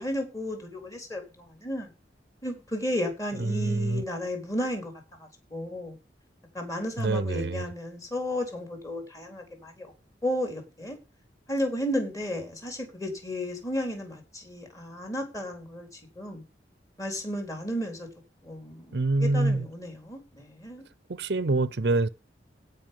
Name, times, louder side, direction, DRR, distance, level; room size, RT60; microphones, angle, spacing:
voice 1, 0.0-1.9 2.4-4.9 5.5-6.0 6.5-9.9 10.2-11.0 11.5-16.4 17.0-18.1 18.4-20.8, left 1 dB, 20° left, 4.1 m, -33 dB
voice 2, 3.4-4.0 7.0-7.7 18.9-19.7 21.1-22.1, right 2 dB, 70° right, 0.7 m, -26 dB
16.5 x 5.6 x 5.5 m
head